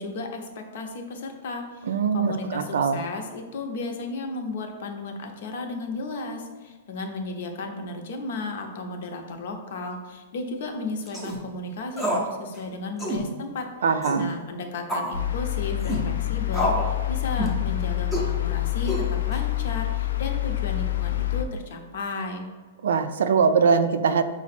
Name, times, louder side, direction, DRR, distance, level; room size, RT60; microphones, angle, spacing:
voice 1, 0.0-13.7 14.1-22.5, left 3 dB, 55° left, 3 dB, 0.7 m, -34 dB
voice 2, 1.9-3.0 13.8-14.3 22.8-24.2, right 5 dB, 80° right, 10 dB, 0.4 m, -22 dB
sound 1, 11.1-11.4 12.0-12.3 12.5-12.6 13.0-13.2 14.0-14.3 14.9-15.1 15.8-16.0 16.5-16.9 17.4-17.6 18.1-18.3 18.9-19.3, equal, ahead, 0.6 m, -27 dB
sound 2, 15.1-21.4, left 17 dB, 90° left, 0.4 m, -27 dB
5.8 x 2.0 x 4.2 m, 1.4 s
hypercardioid pair, 170°, 0 cm